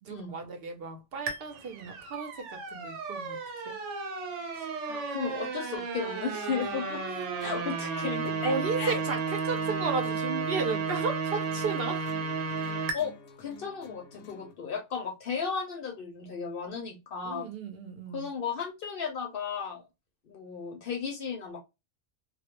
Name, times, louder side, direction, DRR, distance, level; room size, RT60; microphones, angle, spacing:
voice 1, 0.0-3.4 3.6-3.8 8.4-12.1 17.2-18.3, right 4 dB, 60° right, 0.7 m, -34 dB
sound 1, 1.3-13.0, right 4 dB, 85° right, 1.0 m, -33 dB
voice 2, 4.5-7.0 7.4-9.0 12.9-17.5 18.1-19.8 20.3-21.6, left 6 dB, 60° left, 0.7 m, -35 dB
sound 2, 6.6-14.6, left 2 dB, 85° left, 0.9 m, -52 dB
2.3 x 2.0 x 2.8 m
omnidirectional pair, 1.2 m